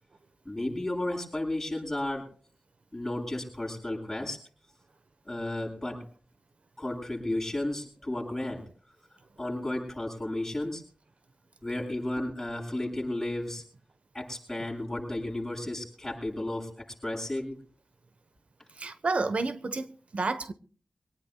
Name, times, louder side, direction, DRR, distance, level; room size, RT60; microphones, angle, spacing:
voice 1, 0.4-2.3 2.9-4.4 5.2-6.1 6.8-8.7 9.4-10.8 11.6-13.6 14.1-17.6, left 1 dB, 15° left, 7.9 m, -33 dB
voice 2, 18.7-20.5, right 3 dB, 65° right, 1.0 m, -30 dB
24.5 x 18.5 x 2.3 m
wide cardioid pair, 60°, 2 cm